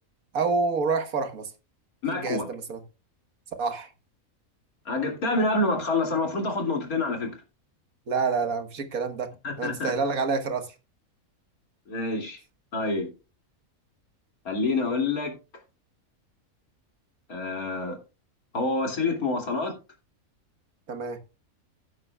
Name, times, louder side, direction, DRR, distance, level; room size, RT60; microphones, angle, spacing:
voice 1, 0.3-1.5 2.1-2.8 3.6-3.9 8.1-9.3 9.6-10.8 20.9-21.2, right 4 dB, 80° right, 1.9 m, -27 dB
voice 2, 2.0-2.5 4.9-7.4 9.4-9.9 11.9-12.4 12.7-13.1 14.4-15.3 17.3-18.0 18.5-19.7, left 3 dB, 85° left, 3.0 m, -27 dB
16.5 x 8.6 x 2.3 m
omnidirectional pair, 1.5 m